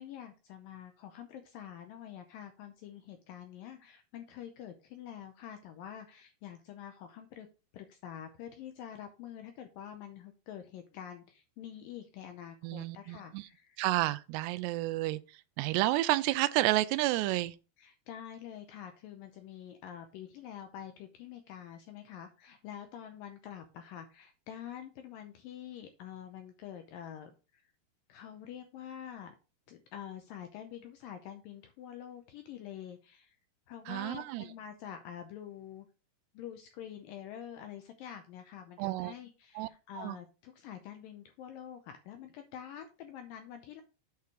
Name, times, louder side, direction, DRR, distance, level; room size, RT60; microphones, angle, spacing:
voice 1, 0.0-7.5 7.7-13.8 17.8-27.7 28.1-29.4 29.7-33.4 33.7-35.9 36.3-43.8, left 9 dB, 80° left, 2.1 m, -47 dB
voice 2, 12.6-13.4 13.8-15.2 15.6-17.5 33.9-34.4 38.8-39.1 39.6-39.7 40.0-40.2, right 17 dB, 90° right, 2.7 m, -30 dB
8.6 x 4.5 x 4.8 m
omnidirectional pair, 4.8 m